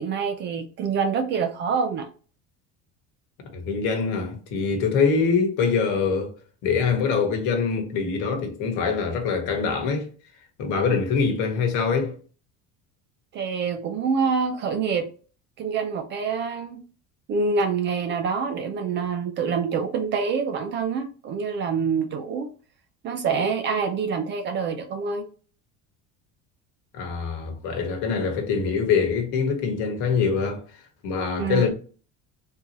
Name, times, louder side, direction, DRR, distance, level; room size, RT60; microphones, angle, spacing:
voice 1, 0.0-2.1 13.3-15.1 15.6-16.8 17.3-22.5 23.0-25.3 31.4-31.7, right 5 dB, 35° right, 0.4 m, -26 dB
voice 2, 3.5-6.3 6.6-10.1 10.6-12.1 26.9-30.6 31.0-31.7, left 5 dB, 60° left, 1.2 m, -24 dB
3.7 x 2.7 x 2.8 m
cardioid pair, 165°, 35 cm